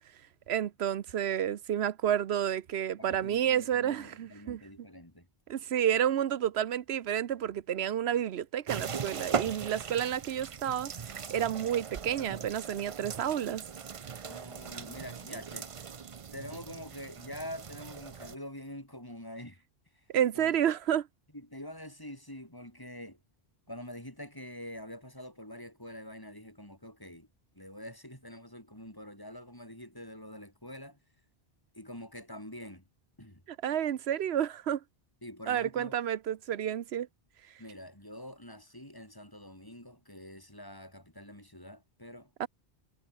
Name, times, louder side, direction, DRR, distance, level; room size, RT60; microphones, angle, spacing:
voice 1, 0.5-4.6 5.5-13.6 20.1-21.1 33.5-34.8 35.5-37.1 42.4-42.5, right 10 dB, 75° right, 1.0 m, -30 dB
voice 2, 3.0-5.3 14.3-15.7 16.3-19.6 20.4-20.6 21.3-23.2 23.7-27.3 27.5-31.0 31.7-32.8 33.2-33.4 35.2-35.9 37.6-42.3, left 1 dB, 20° left, 5.8 m, -45 dB
sound 1, 8.7-18.4, right 6 dB, 40° right, 0.6 m, -39 dB
omnidirectional pair, 1.1 m